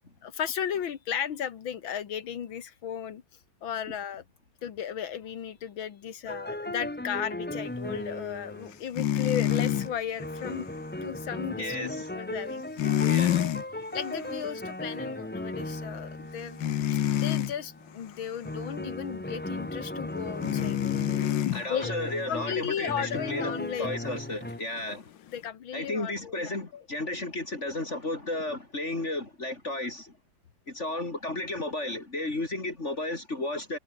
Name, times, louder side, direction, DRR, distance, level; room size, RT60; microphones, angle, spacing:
voice 1, 0.2-3.2 3.6-4.2 4.6-10.7 11.0-12.6 13.9-20.8 21.4-22.0 22.3-24.0 25.3-26.8, left 8 dB, 90° left, 2.3 m, -35 dB
sound 1, 6.2-8.8 9.5-24.6, left 1 dB, 15° left, 0.4 m, -37 dB
sound 2, 8.9-9.9 12.8-13.6 14.0-14.3 16.6-17.5 20.4-21.7 24.8-24.9, left 12 dB, 70° left, 1.6 m, -26 dB
voice 2, 11.6-12.1 13.0-13.5 21.5-23.5 23.8-25.1 25.7-30.2 30.7-33.8, left 2 dB, 35° left, 3.5 m, -33 dB
omnidirectional pair, 2.1 m